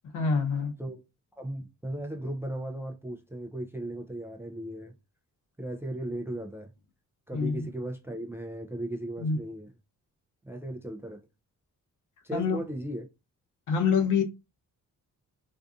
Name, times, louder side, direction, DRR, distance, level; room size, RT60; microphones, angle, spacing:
voice 1, 0.1-0.7 7.3-7.7 9.2-9.4 12.3-12.6 13.7-14.2, left 5 dB, 65° left, 0.7 m, -26 dB
voice 2, 1.4-4.9 5.6-6.7 7.3-9.7 10.5-11.2 12.2-13.1, right 1 dB, 10° right, 0.3 m, -36 dB
2.6 x 2.4 x 2.3 m
cardioid pair, 125°, 32 cm